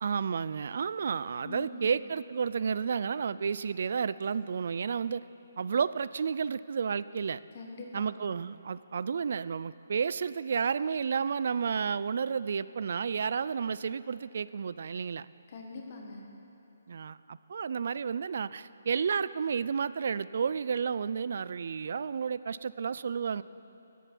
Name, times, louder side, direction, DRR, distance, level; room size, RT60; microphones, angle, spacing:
voice 1, 0.0-5.2 5.6-7.4 7.9-15.3 16.9-23.4, right 6 dB, 50° right, 17 dB, 0.3 m, -31 dB
voice 2, 1.4-1.9 7.5-8.0 15.5-16.2, left 3 dB, 35° left, 1 dB, 1.3 m, -43 dB
16.5 x 8.2 x 6.0 m, 3.0 s
hypercardioid pair, 170°, 0 cm